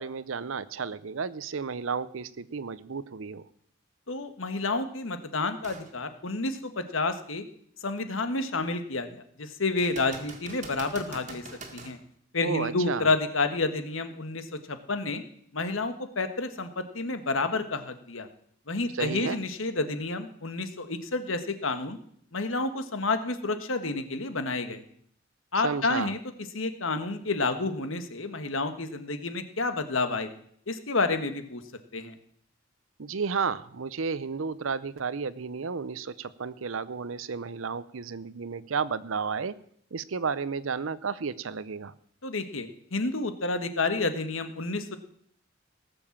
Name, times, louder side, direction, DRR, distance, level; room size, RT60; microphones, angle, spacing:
voice 1, 0.0-3.5 12.4-13.1 18.9-19.4 25.6-26.1 33.0-39.6 39.9-41.9, right 5 dB, 80° right, 18 dB, 0.7 m, -32 dB
voice 2, 4.1-7.4 7.8-11.4 11.7-12.0 12.3-15.2 15.5-18.3 18.7-22.0 22.3-24.8 25.5-26.2 26.5-30.3 30.7-31.6 31.9-32.2 42.2-44.9, left 3 dB, 80° left, 9 dB, 1.5 m, -30 dB
sound 1, 5.6-5.9 6.5-6.6 9.8-12.0 15.7-15.8, right 3 dB, 35° right, 1.8 m, -44 dB
18.5 x 7.1 x 7.2 m, 0.65 s
head